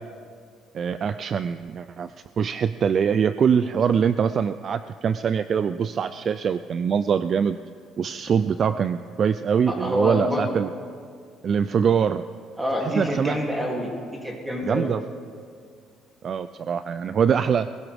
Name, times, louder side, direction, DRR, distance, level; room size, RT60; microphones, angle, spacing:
voice 1, 0.7-7.6 8.0-10.7 11.4-12.2 13.0-13.4 14.6-15.0 16.2-17.7, right 7 dB, 40° right, 12 dB, 0.3 m, -23 dB
voice 2, 9.7-10.6 12.6-13.9 14.2-14.9, equal, 10° right, -1 dB, 2.7 m, -26 dB
20.5 x 16.5 x 3.5 m, 2.1 s
cardioid pair, 140°, 0 cm